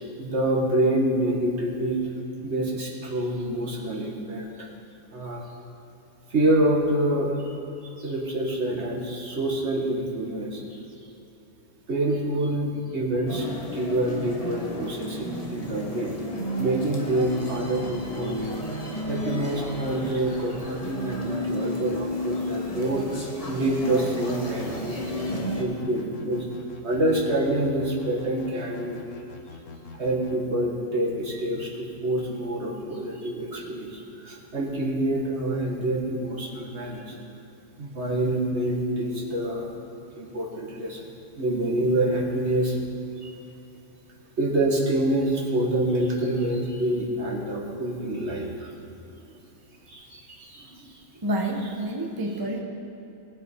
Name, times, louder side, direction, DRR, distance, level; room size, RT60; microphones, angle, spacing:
voice 1, 0.0-2.0 2.4-4.7 5.1-5.4 6.3-7.5 7.8-10.8 11.9-13.5 13.7-16.2 16.6-25.3 25.5-26.5 26.8-29.0 29.9-37.1 37.8-39.7 40.2-42.8 43.2-43.4 44.4-48.7 49.9-50.9, right 1 dB, 55° right, -2 dB, 2.0 m, -27 dB
sound 1, 13.3-25.6, left 1 dB, 30° left, 1.3 m, -32 dB
sound 2, 24.5-30.4, left 3 dB, 65° left, 1.4 m, -44 dB
voice 2, 51.2-52.6, right 1 dB, 20° right, 1 dB, 0.9 m, -28 dB
19.0 x 7.6 x 4.5 m, 3.0 s
omnidirectional pair, 1.4 m